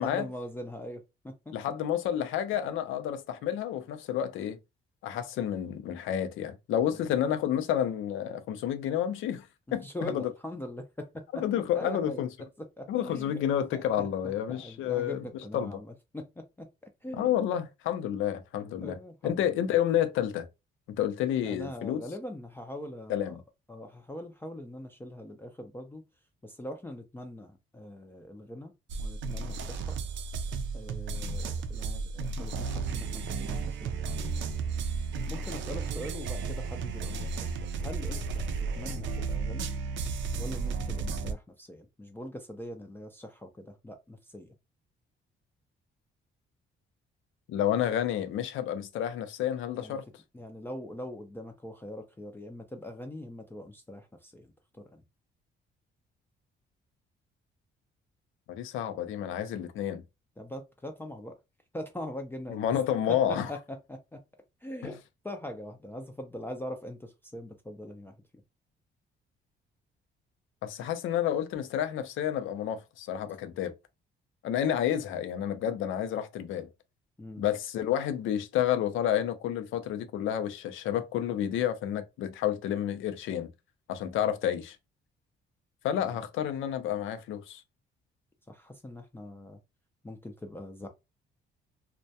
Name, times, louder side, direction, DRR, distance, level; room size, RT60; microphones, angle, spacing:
voice 1, 0.0-1.5 9.8-11.2 11.7-12.3 12.8-14.1 14.5-15.9 16.1-16.3 16.6-16.7 17.0-17.3 18.8-19.4 21.4-23.4 23.7-26.0 26.4-28.7 29.0-30.0 30.7-34.1 35.3-37.5 37.8-38.4 38.8-39.7 40.4-44.5 49.8-50.0 50.3-54.5 54.9-55.0 60.4-61.3 61.7-62.7 63.1-63.6 63.9-64.2 64.6-65.0 65.2-68.1 77.2-77.4 84.2-84.3 88.5-89.6 90.0-90.9, left 1 dB, 10° left, 0.4 m, -42 dB
voice 2, 1.5-4.6 5.0-9.5 9.7-10.3 11.3-12.3 12.9-15.8 17.1-20.5 20.9-22.0 23.1-23.4 47.5-50.1 58.5-60.0 62.5-63.5 64.8-65.0 70.6-73.7 74.4-76.7 77.4-83.5 83.9-84.8 85.8-87.6, left 10 dB, 80° left, 0.5 m, -30 dB
sound 1, 28.9-41.3, right 4 dB, 70° right, 0.4 m, -33 dB
2.2 x 2.1 x 2.7 m
cardioid pair, 90°, 20 cm